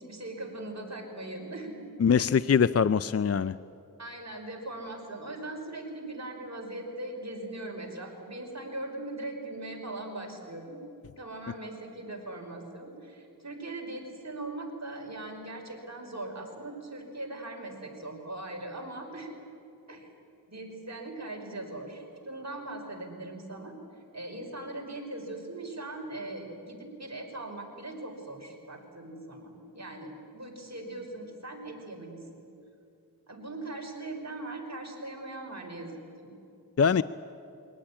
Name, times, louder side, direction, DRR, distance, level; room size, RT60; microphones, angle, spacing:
voice 1, 0.0-1.8 2.2-2.4 4.0-10.8 11.2-19.3 19.9-20.1 20.5-23.7 24.1-32.4 33.3-35.9 36.2-36.3, right 2 dB, 45° right, 1 dB, 5.1 m, -40 dB
voice 2, 2.0-3.6 36.8-37.0, left 6 dB, 40° left, 16 dB, 0.5 m, -23 dB
23.0 x 18.0 x 10.0 m, 2.7 s
cardioid pair, 45°, 39 cm